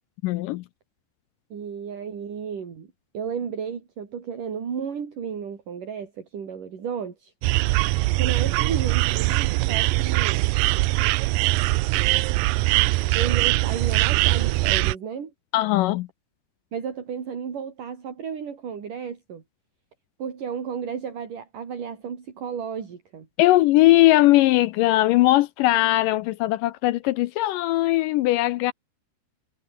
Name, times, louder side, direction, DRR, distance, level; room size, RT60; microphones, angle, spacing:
voice 1, 0.2-0.7 15.5-16.1 23.4-28.7, left 17 dB, 80° left, 2.0 m, -19 dB
voice 2, 1.5-2.9 3.1-7.3 8.2-10.5 13.1-15.3 16.7-19.4 20.2-23.3, right 7 dB, 60° right, 5.0 m, -33 dB
sound 1, 7.4-14.9, right 21 dB, 80° right, 2.1 m, -22 dB
omnidirectional pair, 4.3 m